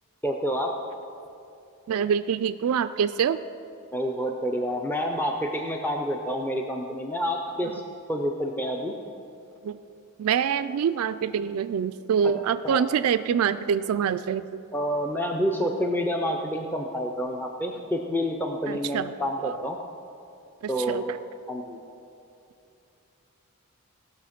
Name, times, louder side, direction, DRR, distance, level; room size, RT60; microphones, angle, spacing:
voice 1, 0.2-0.7 3.9-7.8 8.1-8.9 12.6-12.9 14.7-19.8 20.7-21.1 21.5-21.8, equal, 10° left, 2 dB, 0.5 m, -28 dB
voice 2, 1.9-3.4 9.6-9.8 10.2-14.6 18.7-19.1 19.4-19.5 20.9-21.2, right 7 dB, 80° right, 12 dB, 0.3 m, -25 dB
17.0 x 6.3 x 5.8 m, 2.7 s
head